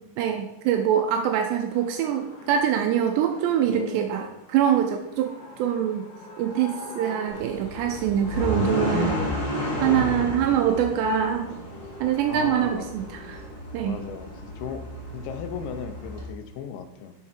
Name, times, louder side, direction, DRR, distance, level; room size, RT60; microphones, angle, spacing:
voice 1, 0.2-6.1 6.4-9.2 9.8-11.6 12.0-13.4 13.7-14.0, right 9 dB, 85° right, 5 dB, 2.8 m, -24 dB
sound 1, 1.7-13.5, left 1 dB, 60° left, 1.1 m, -45 dB
voice 2, 3.7-4.1 9.8-10.5 12.3-12.9 13.8-14.9 15.1-17.1, left 8 dB, 85° left, 8 dB, 3.2 m, -36 dB
sound 2, 7.3-16.3, equal, 20° left, 2.8 m, -32 dB
13.0 x 5.7 x 4.4 m, 0.88 s
omnidirectional pair, 5.1 m